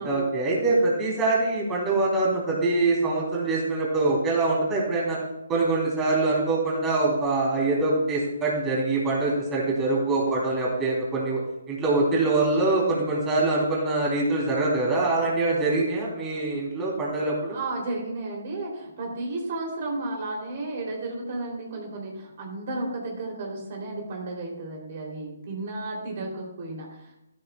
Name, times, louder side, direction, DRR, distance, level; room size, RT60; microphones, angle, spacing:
voice 1, 0.0-5.2 5.5-11.4 11.7-17.6, right 2 dB, 15° right, -4 dB, 3.5 m, -24 dB
voice 2, 17.4-27.2, right 2 dB, 45° right, 0 dB, 3.3 m, -33 dB
13.5 x 12.0 x 2.4 m, 0.88 s
figure-of-eight pair, 145°, 0 cm